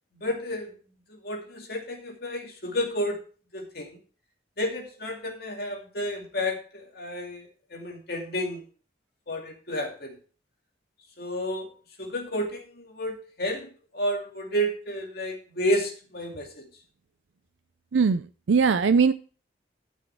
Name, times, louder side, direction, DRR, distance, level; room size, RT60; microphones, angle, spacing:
voice 1, 0.1-0.7 1.1-3.2 3.5-4.0 4.6-8.6 9.3-10.2 11.2-11.7 12.0-13.7 13.9-16.5, equal, 55° left, 1 dB, 2.5 m, -31 dB
voice 2, 17.9-19.1, right 5 dB, 80° right, 11 dB, 0.5 m, -21 dB
13.0 x 6.4 x 4.5 m, 0.39 s
head